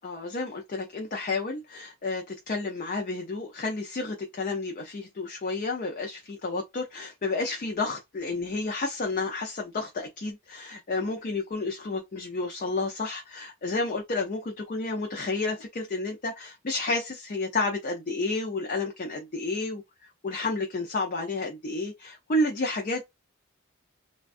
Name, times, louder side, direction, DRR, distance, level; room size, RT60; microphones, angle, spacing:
voice 1, 0.0-19.8 20.2-23.0, left 3 dB, 40° left, 0.4 m, -31 dB
3.3 x 2.2 x 2.4 m
head